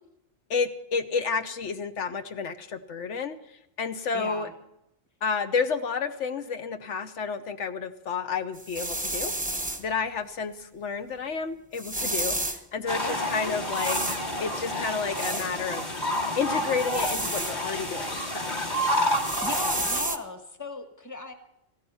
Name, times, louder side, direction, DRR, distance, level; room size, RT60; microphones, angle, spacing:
voice 1, 0.5-4.5 5.2-9.3 9.8-14.0 14.4-15.9 16.4-18.9, left 5 dB, 80° left, 9 dB, 1.3 m, -31 dB
voice 2, 4.1-4.5 13.0-13.6 19.4-21.3, left 2 dB, 15° left, 7 dB, 1.4 m, -36 dB
sound 1, 8.5-9.8 11.7-12.6 13.7-14.2 15.2-15.5 16.8-17.6 18.8-20.2, right 1 dB, 10° right, 0.8 m, -31 dB
sound 2, 12.9-20.0, equal, 40° left, 2.1 m, -29 dB
16.0 x 15.0 x 5.6 m, 0.83 s
omnidirectional pair, 1.2 m